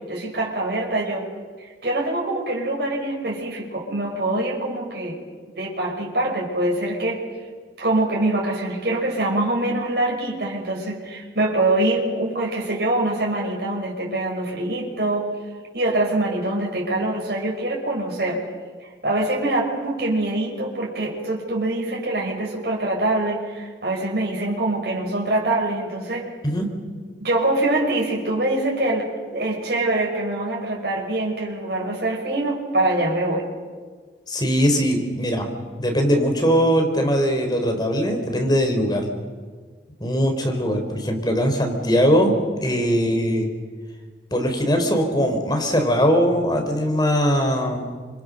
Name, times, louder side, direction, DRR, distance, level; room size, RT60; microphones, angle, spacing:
voice 1, 0.1-1.3 1.6-5.2 5.6-7.2 7.8-15.3 15.7-18.4 18.8-26.3 27.2-33.5, right 2 dB, 60° right, -2 dB, 5.5 m, -24 dB
voice 2, 34.3-35.4 35.8-39.1 40.0-42.3 42.6-43.5 44.3-47.9, equal, 25° left, 3 dB, 4.4 m, -20 dB
29.5 x 26.0 x 6.7 m, 1.5 s
head